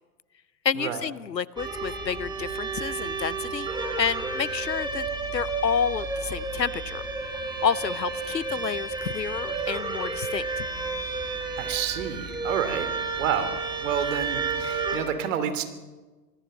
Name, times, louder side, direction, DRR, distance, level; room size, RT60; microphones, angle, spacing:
voice 1, 0.6-3.7 4.0-5.1 5.3-7.0 7.6-10.7, left 7 dB, 90° left, 22 dB, 0.8 m, -29 dB
sound 1, 1.6-15.0, right 3 dB, 10° right, 3.1 m, -31 dB
voice 2, 11.6-12.9 13.2-13.5 13.8-15.6, right 9 dB, 50° right, 10 dB, 2.9 m, -29 dB
25.5 x 19.5 x 6.5 m, 1.3 s
figure-of-eight pair, 105°, 49 cm